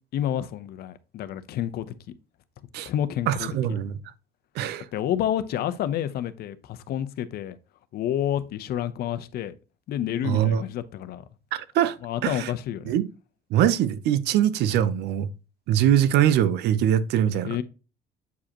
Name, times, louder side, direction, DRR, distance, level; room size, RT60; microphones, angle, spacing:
voice 1, 0.1-1.9 2.8-3.5 4.9-7.6 7.9-9.5 9.9-11.2 12.0-13.0 17.3-17.6, left 11 dB, 70° left, 0.8 m, -29 dB
voice 2, 3.3-4.0 4.6-4.9 10.2-10.6 11.5-12.0 12.2-12.5 12.9-13.0 13.5-15.3 15.7-17.6, right 10 dB, 80° right, 0.7 m, -22 dB
8.2 x 4.9 x 2.9 m
cardioid pair, 110°, 17 cm